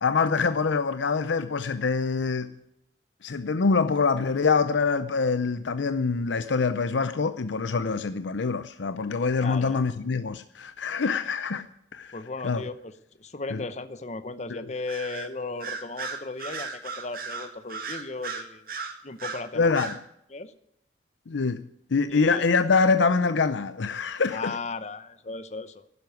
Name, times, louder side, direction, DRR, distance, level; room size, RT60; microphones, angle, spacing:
voice 1, 0.0-2.5 3.2-11.7 11.9-12.2 12.4-12.6 13.5-13.6 14.5-14.6 19.6-20.0 21.3-21.6 21.9-24.5, left 4 dB, 85° left, 0.6 m, -25 dB
voice 2, 9.4-9.8 12.1-12.9 13.2-18.7 19.0-19.9 20.3-20.5 22.1-22.5 24.3-26.0, left 3 dB, 40° left, 0.8 m, -36 dB
Bird vocalization bird call bird song, 14.9-15.3 15.6-19.4 19.7-20.0, right 5 dB, 50° right, 2.0 m, -35 dB
12.0 x 10.5 x 9.3 m
head